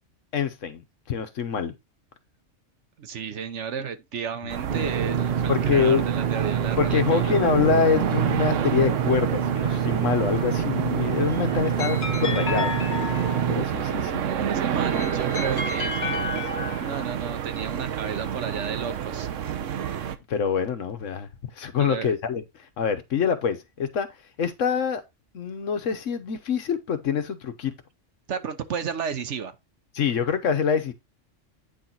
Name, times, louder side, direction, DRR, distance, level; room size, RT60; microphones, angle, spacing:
voice 1, 0.3-1.7 5.5-6.0 6.8-12.7 13.5-14.3 20.3-21.3 21.6-22.4 22.8-24.1 24.4-25.0 25.3-27.7 29.9-30.9, left 6 dB, 85° left, 1.4 m, -25 dB
voice 2, 3.0-7.4 14.2-16.5 16.8-19.3 21.8-22.1 28.3-29.5, right 6 dB, 70° right, 1.2 m, -33 dB
sound 1, 4.5-20.2, right 9 dB, 85° right, 1.2 m, -29 dB
Engine / Mechanisms, 4.7-13.6, right 7 dB, 55° right, 0.7 m, -27 dB
sound 2, 11.3-13.8 14.7-17.1, left 4 dB, 55° left, 1.6 m, -32 dB
9.3 x 4.0 x 4.4 m
omnidirectional pair, 1.3 m